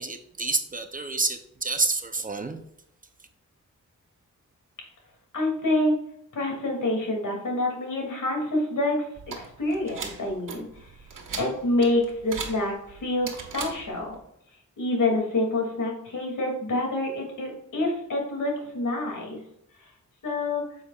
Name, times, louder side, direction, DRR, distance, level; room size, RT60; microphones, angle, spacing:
voice 1, 0.0-2.6, right 3 dB, 25° right, 7 dB, 0.6 m, -28 dB
voice 2, 5.3-5.9 6.3-9.0 9.4-10.7 11.4-14.1 14.8-19.4 20.2-20.7, left 2 dB, 80° left, 0 dB, 2.6 m, -27 dB
sound 1, 9.2-14.2, right 5 dB, 85° right, 1.4 m, -39 dB
9.4 x 7.1 x 2.4 m, 0.73 s
wide cardioid pair, 140°, 31 cm